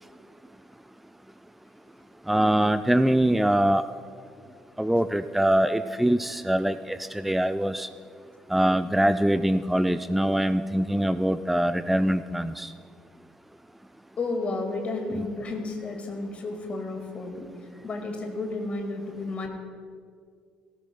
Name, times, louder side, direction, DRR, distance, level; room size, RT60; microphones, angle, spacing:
voice 1, 2.3-3.8 4.8-7.9 8.5-12.7, right 1 dB, 5° right, 12 dB, 0.4 m, -23 dB
voice 2, 14.2-17.5 17.8-19.5, left 3 dB, 35° left, 4 dB, 2.0 m, -32 dB
18.0 x 17.5 x 2.3 m, 2.1 s
figure-of-eight pair, 50°, 4 cm